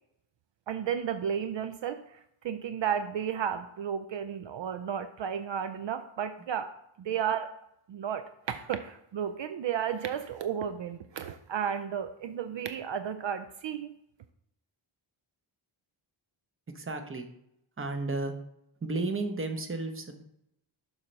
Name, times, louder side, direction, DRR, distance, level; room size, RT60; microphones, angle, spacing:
voice 1, 0.7-2.2 2.4-6.7 7.0-7.5 7.9-13.9, right 8 dB, 65° right, 9 dB, 0.5 m, -33 dB
voice 2, 16.7-17.3 17.8-18.3 18.8-20.2, right 3 dB, 25° right, 6 dB, 0.8 m, -33 dB
7.0 x 3.3 x 5.1 m, 0.78 s
wide cardioid pair, 95°, 48 cm